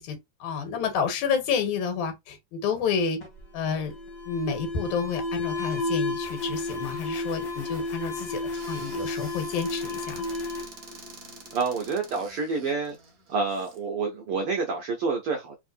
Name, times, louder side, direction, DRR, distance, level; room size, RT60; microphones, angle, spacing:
voice 1, 0.0-3.2 3.5-3.9 4.3-8.4 8.7-10.3, left 6 dB, 75° left, 2.5 m, -29 dB
Alarm, 3.2-11.8, left 2 dB, 35° left, 1.8 m, -32 dB
Squeak / Cupboard open or close, 8.5-13.8, right 4 dB, 55° right, 0.9 m, -47 dB
voice 2, 11.5-13.0 13.3-15.6, right 4 dB, 75° right, 1.2 m, -28 dB
4.2 x 3.6 x 2.6 m
omnidirectional pair, 3.5 m